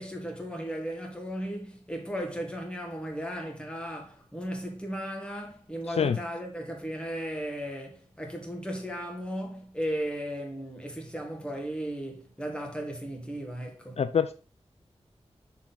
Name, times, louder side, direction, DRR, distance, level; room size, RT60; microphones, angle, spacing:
voice 1, 0.0-14.0, equal, 10° left, 1.7 m, -36 dB
voice 2, 5.9-6.2 14.0-14.3, left 7 dB, 65° left, 0.4 m, -25 dB
6.2 x 4.0 x 4.0 m
wide cardioid pair, 95°, 11 cm